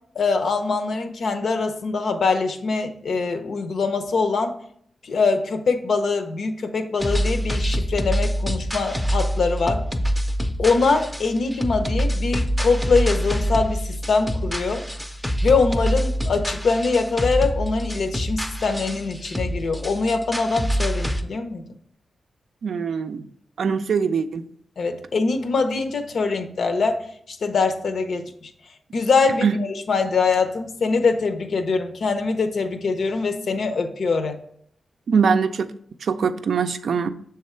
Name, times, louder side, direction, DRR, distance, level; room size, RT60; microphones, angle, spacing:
voice 1, 0.2-4.6 5.0-9.8 10.6-14.8 15.4-21.6 24.8-27.0 27.3-28.5 28.9-34.3, left 4 dB, 70° left, 7 dB, 0.7 m, -23 dB
sound 1, 7.0-21.2, equal, 5° left, 0.5 m, -26 dB
voice 2, 22.6-23.2 23.6-24.4 29.4-29.5 35.1-35.7 36.0-37.1, right 6 dB, 75° right, 10 dB, 0.4 m, -22 dB
6.5 x 3.5 x 4.3 m, 0.66 s
wide cardioid pair, 110°, 0 cm